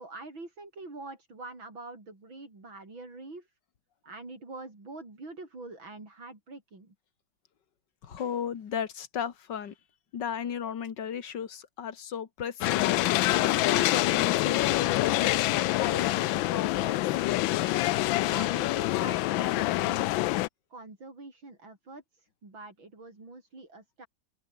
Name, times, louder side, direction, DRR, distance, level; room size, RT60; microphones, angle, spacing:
voice 1, 0.0-3.5 4.0-6.9 18.3-20.0 20.7-24.1, right 2 dB, 75° right, 7.3 m, -45 dB
voice 2, 8.0-9.7 10.1-12.8 13.4-17.0, left 8 dB, 60° left, 2.2 m, -35 dB
sound 1, 12.6-20.5, left 17 dB, 80° left, 1.3 m, -26 dB
open air
omnidirectional pair, 2.1 m